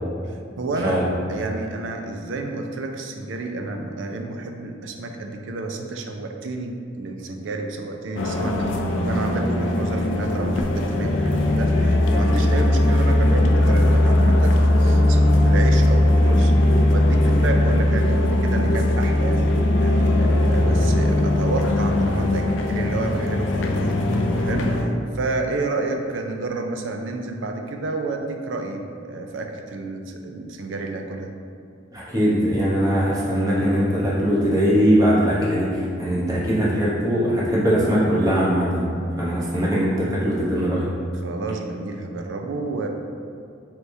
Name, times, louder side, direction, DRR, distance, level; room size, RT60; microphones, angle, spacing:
voice 1, 0.2-1.0 1.3-16.6 16.9-19.5 19.8-31.3 39.4-39.5 41.2-42.9, right 3 dB, 90° right, 4 dB, 0.4 m, -30 dB
sound 1, 8.2-24.8, left 1 dB, 80° left, 0.4 m, -19 dB
voice 2, 31.9-38.9 39.2-40.9, equal, 20° right, -7 dB, 0.9 m, -21 dB
4.6 x 3.4 x 2.7 m, 2.3 s
head